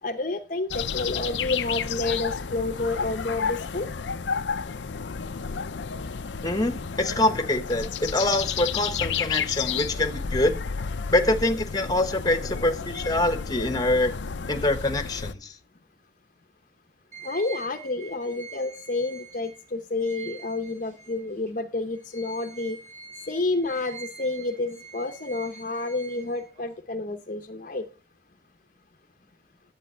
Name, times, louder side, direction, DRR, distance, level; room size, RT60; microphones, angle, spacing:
voice 1, 0.0-3.9 17.2-22.8 23.3-27.8, left 2 dB, 45° left, 0.8 m, -29 dB
sound 1, 0.7-15.3, left 6 dB, 80° left, 0.6 m, -31 dB
voice 2, 6.4-10.5 11.1-14.1 14.5-15.5, left 1 dB, 20° left, 1.2 m, -25 dB
sound 2, 17.1-21.5 21.9-26.8, right 5 dB, 45° right, 5.7 m, -45 dB
11.0 x 7.9 x 4.4 m
head